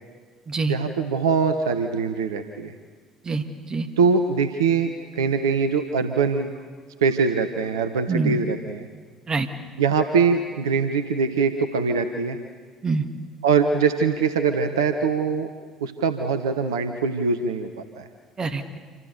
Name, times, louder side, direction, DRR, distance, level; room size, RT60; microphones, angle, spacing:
voice 1, 0.7-2.7 4.0-4.9 5.1-6.5 7.0-8.9 9.8-12.4 13.4-15.5 15.8-17.7 18.0-18.1, right 5 dB, 75° right, 8 dB, 1.2 m, -22 dB
voice 2, 3.3-3.9 8.1-8.4 9.3-9.5 12.8-13.0 18.4-18.8, right 4 dB, 30° right, 7 dB, 2.4 m, -25 dB
27.5 x 26.5 x 6.9 m, 1.5 s
figure-of-eight pair, 55°, 2 cm